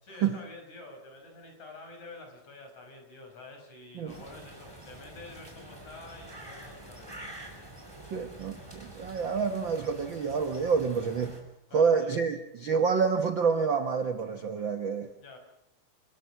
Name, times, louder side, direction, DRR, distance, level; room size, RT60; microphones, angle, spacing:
voice 1, 0.0-7.3 11.7-12.1 15.2-15.4, left 2 dB, 50° left, 4 dB, 6.7 m, -48 dB
sound 1, 4.1-11.4, right 1 dB, 5° right, 5.3 m, -47 dB
voice 2, 8.1-11.4 11.7-15.1, right 5 dB, 60° right, 7 dB, 1.2 m, -28 dB
29.5 x 20.5 x 6.0 m, 0.76 s
omnidirectional pair, 4.2 m